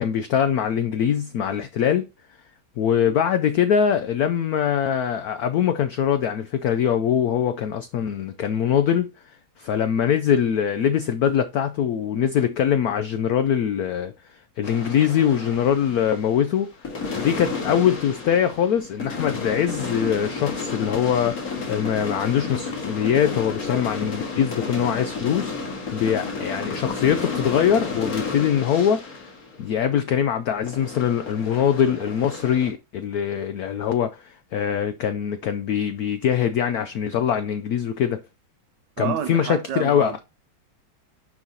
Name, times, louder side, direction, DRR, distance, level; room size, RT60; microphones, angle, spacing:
voice 1, 0.0-2.1 2.8-9.1 9.6-14.1 14.6-16.7 17.1-29.2 29.6-38.2 39.0-40.1, left 8 dB, 85° left, 0.8 m, -23 dB
sound 1, 14.6-16.5 16.8-30.3 30.7-32.7, left 4 dB, 45° left, 2.1 m, -32 dB
voice 2, 39.0-40.2, right 9 dB, 70° right, 1.1 m, -29 dB
9.7 x 4.9 x 2.8 m
omnidirectional pair, 2.2 m